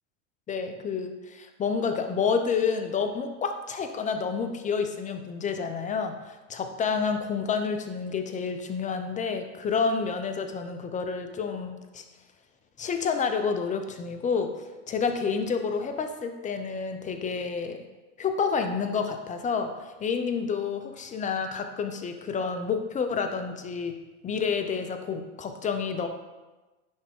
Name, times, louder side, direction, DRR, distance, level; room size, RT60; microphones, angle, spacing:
voice 1, 0.5-12.0 12.8-17.8 18.2-24.0 24.2-26.1, left 5 dB, 20° left, 6 dB, 0.6 m, -29 dB
10.5 x 3.6 x 3.6 m, 1.2 s
hypercardioid pair, 110°, 36 cm